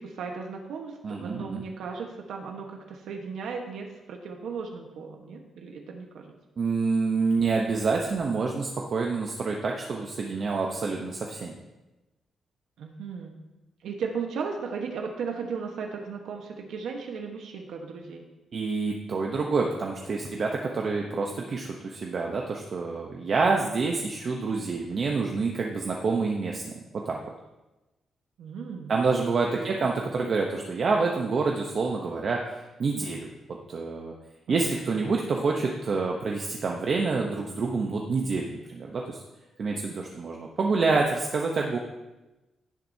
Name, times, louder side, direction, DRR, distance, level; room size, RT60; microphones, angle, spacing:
voice 1, 0.0-6.3 12.8-13.4 13.8-18.3 28.4-28.9 29.6-29.8 34.5-34.6, right 5 dB, 75° right, 2 dB, 1.2 m, -36 dB
voice 2, 1.0-1.6 6.6-11.5 18.5-27.2 28.9-34.1 34.5-39.2 39.6-41.8, right 4 dB, 40° right, 0 dB, 0.8 m, -27 dB
16.5 x 7.5 x 2.8 m, 1.1 s
wide cardioid pair, 175°, 0 cm